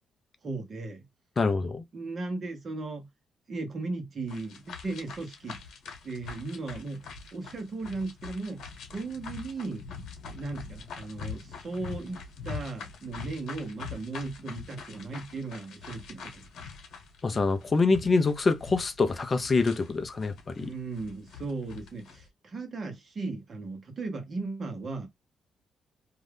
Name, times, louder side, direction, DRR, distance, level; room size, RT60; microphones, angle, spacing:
voice 1, 0.4-1.0 1.9-3.1 3.5-5.6 6.0-7.1 7.3-8.6 8.9-9.8 10.3-16.5 20.6-25.1, right 3 dB, 35° right, 1.0 m, -36 dB
voice 2, 1.4-1.8 17.2-20.7, left 3 dB, 30° left, 0.5 m, -25 dB
sound 1, 4.3-22.3, left 5 dB, 70° left, 1.1 m, -44 dB
2.6 x 2.3 x 3.3 m
cardioid pair, 140°, 0 cm